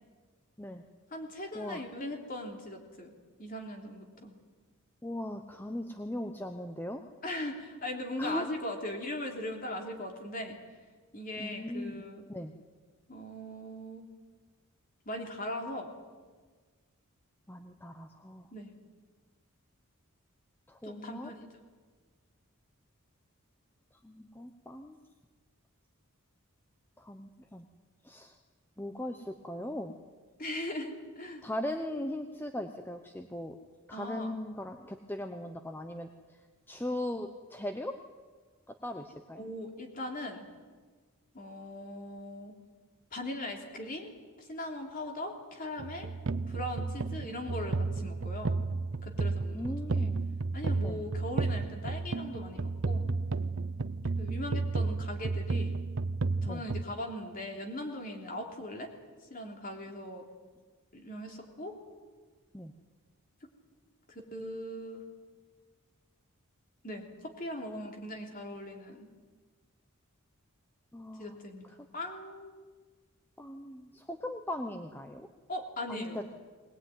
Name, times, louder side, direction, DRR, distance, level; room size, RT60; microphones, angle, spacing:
voice 1, 1.1-3.1 3.4-4.3 7.2-10.6 11.1-12.2 13.1-14.1 15.0-15.9 18.5-18.7 20.8-21.6 30.4-31.4 33.9-34.4 39.3-40.4 41.3-42.5 43.1-44.1 44.4-46.1 46.5-48.6 49.0-50.1 50.5-53.1 54.2-55.8 56.4-58.9 59.3-60.2 60.9-61.7 64.1-65.0 66.8-69.1 71.2-71.6 71.9-72.5 75.5-76.3, left 1 dB, 40° left, 2 dB, 3.3 m, -39 dB
voice 2, 5.0-7.0 8.2-8.5 11.4-12.5 17.5-18.5 20.7-21.3 24.0-25.0 27.0-27.7 28.0-28.3 28.8-30.0 31.4-33.5 33.9-36.1 36.7-38.0 38.7-39.4 49.5-50.2 50.8-51.0 56.4-56.6 62.5-62.7 67.8-67.9 70.9-71.4 73.4-75.3 75.9-76.2, left 1 dB, 10° left, 6 dB, 0.8 m, -39 dB
sound 1, 45.8-56.8, right 3 dB, 55° right, 0.6 m, -32 dB
20.5 x 20.0 x 9.4 m, 1.5 s
head